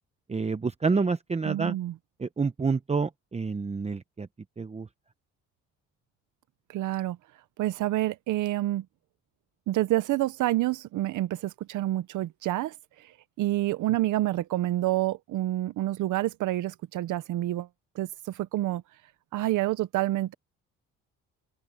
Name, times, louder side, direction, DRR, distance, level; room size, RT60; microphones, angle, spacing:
voice 1, 0.3-1.7 2.2-4.3 4.6-4.9, right 4 dB, 20° right, 0.9 m, -28 dB
voice 2, 1.4-2.0 6.7-7.2 7.6-8.9 9.7-17.7 17.9-18.8 19.3-20.3, right 15 dB, 80° right, 0.8 m, -28 dB
open air
cardioid pair, 90°, 30 cm